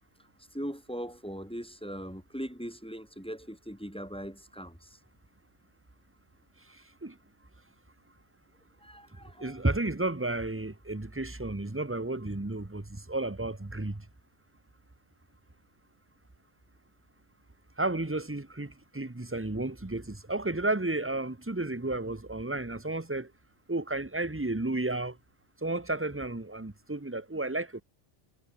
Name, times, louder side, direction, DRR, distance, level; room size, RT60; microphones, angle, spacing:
voice 1, 0.5-5.0 8.8-9.6, equal, 5° left, 4.6 m, -40 dB
voice 2, 6.7-7.2 9.4-14.0 17.8-23.3 23.7-25.2 25.6-27.8, right 2 dB, 10° right, 1.1 m, -32 dB
omnidirectional pair, 1.2 m